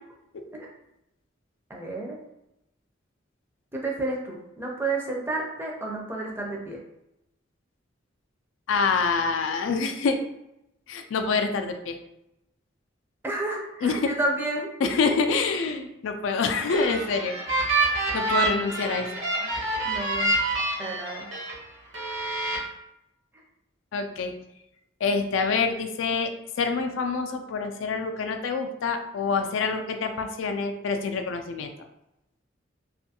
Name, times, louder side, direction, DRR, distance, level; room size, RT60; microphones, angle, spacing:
voice 1, 1.7-2.2 3.7-6.8 13.2-14.7 19.8-20.3 20.8-21.3, right 2 dB, 10° right, -1 dB, 0.4 m, -31 dB
voice 2, 8.7-10.2 10.9-12.0 13.8-14.1 14.8-17.3 18.1-19.1 23.9-24.3 25.0-26.3 26.6-31.7, left 4 dB, 85° left, 6 dB, 0.3 m, -26 dB
sound 1, 16.5-21.5 21.9-22.6, right 2 dB, 70° right, 0.8 m, -27 dB
2.6 x 2.4 x 2.7 m, 0.86 s
head